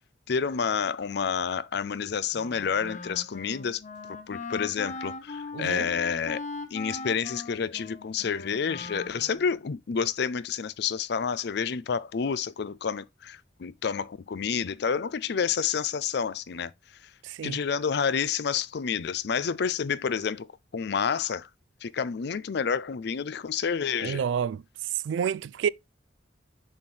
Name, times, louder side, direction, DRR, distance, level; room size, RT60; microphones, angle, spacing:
voice 1, 0.3-3.8 4.3-6.4 6.7-16.7 17.4-20.5 20.7-21.5 21.8-24.2, left 6 dB, 65° left, 0.5 m, -29 dB
Wind instrument woodwind instrument, 2.3-9.6, left 3 dB, 40° left, 0.8 m, -40 dB
voice 2, 5.5-5.9 17.2-17.6 24.0-24.6 25.0-25.7, right 7 dB, 80° right, 0.3 m, -29 dB
7.1 x 4.3 x 3.2 m
head